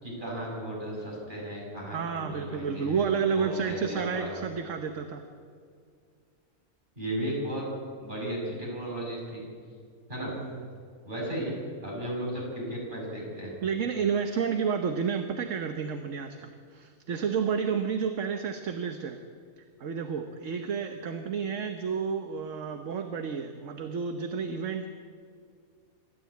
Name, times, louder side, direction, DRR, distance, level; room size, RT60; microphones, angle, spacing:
voice 1, 0.0-4.3 7.0-7.7 8.0-9.4 10.1-10.3 11.0-13.5, right 1 dB, 35° right, -3 dB, 6.5 m, -35 dB
voice 2, 1.9-5.2 10.3-10.7 13.6-19.2 19.8-24.9, right 6 dB, 65° right, 7 dB, 1.3 m, -31 dB
25.5 x 12.5 x 8.4 m, 2.2 s
omnidirectional pair, 1.5 m